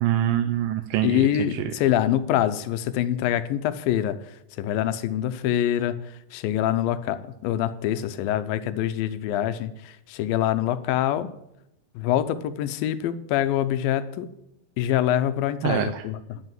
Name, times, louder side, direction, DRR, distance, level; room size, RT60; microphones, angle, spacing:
voice 1, 0.0-1.6 15.6-16.0, right 12 dB, 85° right, 8 dB, 2.3 m, -25 dB
voice 2, 1.0-4.2 4.6-6.0 6.3-11.3 12.0-14.3 14.8-16.4, left 11 dB, 85° left, 12 dB, 2.4 m, -25 dB
10.0 x 8.1 x 7.4 m, 0.81 s
omnidirectional pair, 4.1 m